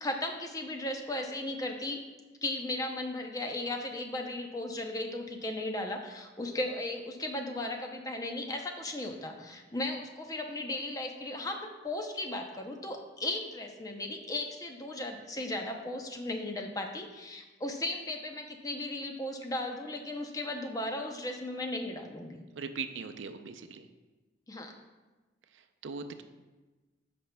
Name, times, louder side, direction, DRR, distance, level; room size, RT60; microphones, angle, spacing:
voice 1, 0.0-2.0 2.4-22.4 24.5-24.7, left 1 dB, 20° left, 3 dB, 0.6 m, -36 dB
voice 2, 22.5-23.9 25.5-26.2, right 5 dB, 80° right, 8 dB, 0.5 m, -40 dB
13.5 x 5.1 x 2.2 m, 1.2 s
head